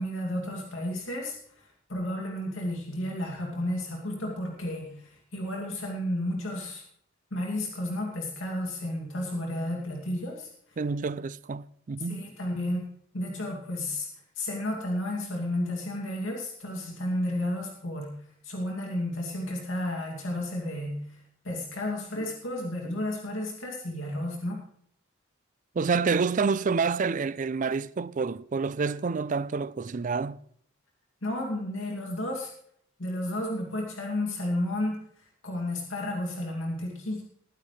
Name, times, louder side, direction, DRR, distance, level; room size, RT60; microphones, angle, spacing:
voice 1, 0.0-6.8 7.3-10.8 12.0-12.9 13.1-14.1 14.4-18.1 18.4-24.6 31.2-32.5 33.0-37.2, left 1 dB, 75° left, 2.6 m, -32 dB
voice 2, 10.8-12.2 25.8-30.4, right 5 dB, 40° right, 0.4 m, -28 dB
21.0 x 9.7 x 3.3 m
head